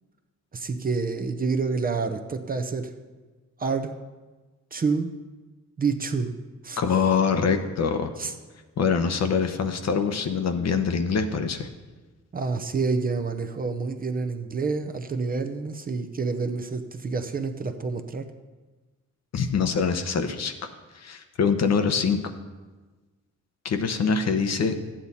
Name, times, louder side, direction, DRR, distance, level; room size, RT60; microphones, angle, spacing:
voice 1, 0.5-2.9 3.6-3.9 4.7-5.1 5.8-6.3 6.6-6.8 8.2-8.3 12.3-18.3, right 4 dB, 30° right, 6 dB, 0.7 m, -28 dB
voice 2, 6.8-8.1 8.8-11.7 19.3-20.7 20.9-22.2 23.6-24.7, left 5 dB, 55° left, 7 dB, 0.9 m, -24 dB
13.0 x 8.7 x 4.2 m, 1.3 s
wide cardioid pair, 140°, 31 cm